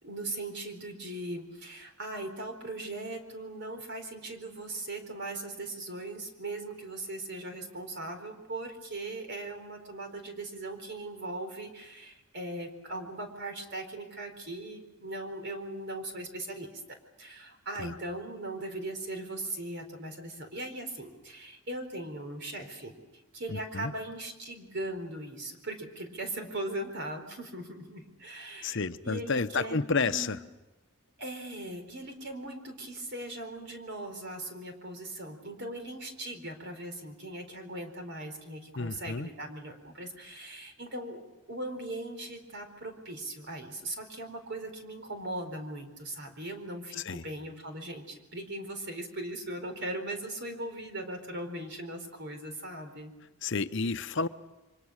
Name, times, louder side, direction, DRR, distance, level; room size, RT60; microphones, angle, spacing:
voice 1, 0.0-23.0 23.3-30.4 31.2-41.2 41.5-53.1, right 1 dB, 55° right, 6 dB, 4.3 m, -39 dB
voice 2, 23.5-23.9 28.6-30.4 38.8-39.3 46.9-47.3 53.4-54.3, left 4 dB, 60° left, 11 dB, 0.9 m, -31 dB
28.5 x 25.0 x 6.5 m, 1.1 s
head